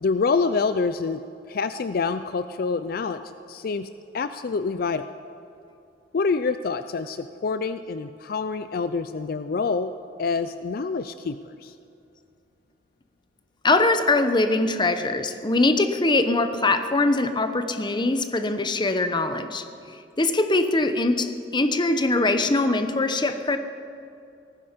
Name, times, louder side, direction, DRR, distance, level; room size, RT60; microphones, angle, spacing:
voice 1, 0.0-1.2 1.5-5.1 6.1-9.9 10.2-11.7, left 4 dB, 60° left, 12 dB, 0.4 m, -26 dB
voice 2, 13.6-19.6 20.2-23.6, left 2 dB, 25° left, 9 dB, 0.9 m, -22 dB
18.5 x 15.0 x 5.1 m, 2.6 s
head